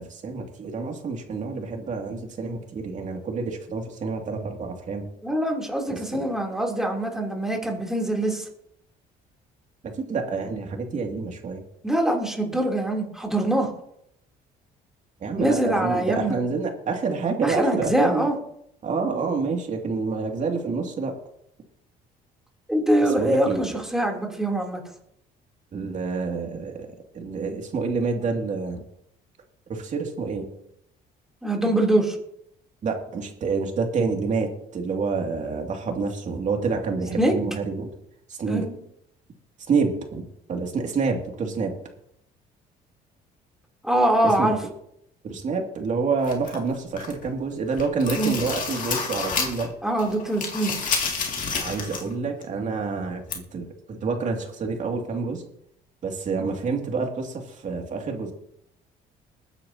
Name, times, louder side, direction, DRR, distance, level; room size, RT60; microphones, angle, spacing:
voice 1, 0.0-5.1 5.9-6.2 9.8-11.6 15.2-18.3 18.8-21.1 23.0-23.8 25.7-26.9 27.1-28.8 29.7-30.5 32.8-37.9 38.3-38.6 39.7-41.7 44.2-44.5 45.2-49.7 51.5-55.5 56.0-58.3, right 4 dB, 45° right, 2 dB, 2.6 m, -28 dB
voice 2, 5.2-8.5 11.8-13.7 15.4-16.4 17.4-18.4 22.7-24.8 31.4-32.2 37.2-37.3 38.5-38.8 43.8-44.6 48.1-48.4 49.8-51.0, right 1 dB, 5° right, 0 dB, 3.3 m, -23 dB
sound 1, 46.2-47.3 47.6-49.7 50.0-52.1 52.4-52.5 53.3-53.4, left 5 dB, 50° left, 2.5 m, -29 dB
21.0 x 9.8 x 2.9 m, 0.74 s
cardioid pair, 110°, 17 cm